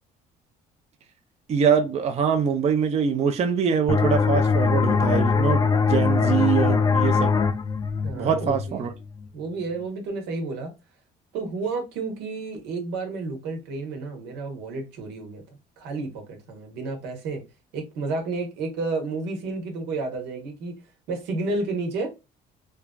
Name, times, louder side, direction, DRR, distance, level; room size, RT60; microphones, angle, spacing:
voice 1, 1.5-7.3 8.1-8.9, right 7 dB, 40° right, 0.5 m, -23 dB
sound 1, 3.9-9.3, left 5 dB, 25° left, 0.4 m, -22 dB
voice 2, 8.0-8.8 9.3-10.7 11.3-15.4 15.8-17.4 17.7-20.7 21.1-22.1, right 3 dB, 90° right, 1.1 m, -31 dB
3.2 x 2.4 x 2.3 m
cardioid pair, 110°, 17 cm